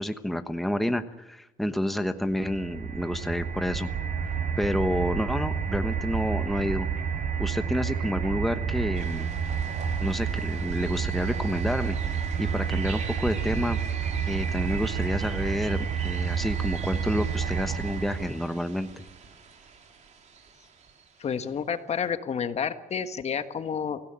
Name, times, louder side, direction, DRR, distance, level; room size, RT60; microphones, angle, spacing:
voice 1, 0.0-3.9 4.6-6.9 7.4-9.3 10.0-12.0 12.4-13.8 14.3-19.0, equal, ahead, 8 dB, 1.1 m, -29 dB
sound 1, 2.3-18.5, right 7 dB, 70° right, 3.7 m, -30 dB
sound 2, 8.9-21.5, right 5 dB, 55° right, 3.7 m, -46 dB
voice 2, 21.2-24.0, left 7 dB, 45° left, 10 dB, 1.5 m, -30 dB
24.5 x 16.5 x 8.9 m, 0.97 s
cardioid pair, 120°, 15 cm